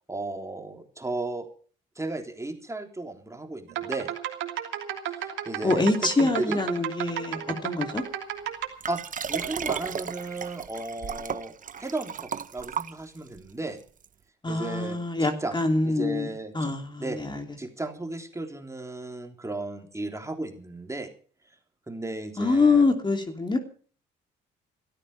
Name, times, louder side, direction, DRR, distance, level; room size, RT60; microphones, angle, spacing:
voice 1, 0.1-1.5 2.0-4.1 5.1-6.6 8.9-9.0 9.3-13.8 14.5-15.6 15.8-16.7 17.0-17.2 17.6-21.1 21.9-22.9, right 2 dB, 15° right, 4 dB, 3.5 m, -35 dB
sound 1, 3.7-8.7, right 11 dB, 80° right, 3.0 m, -33 dB
voice 2, 5.6-8.0 14.4-16.3 16.5-17.4 22.4-23.6, left 3 dB, 25° left, 5 dB, 3.0 m, -25 dB
Liquid, 8.8-13.4 14.0-14.1, right 7 dB, 40° right, 1.0 m, -34 dB
16.5 x 13.5 x 5.5 m, 0.43 s
supercardioid pair, 60°, 20 cm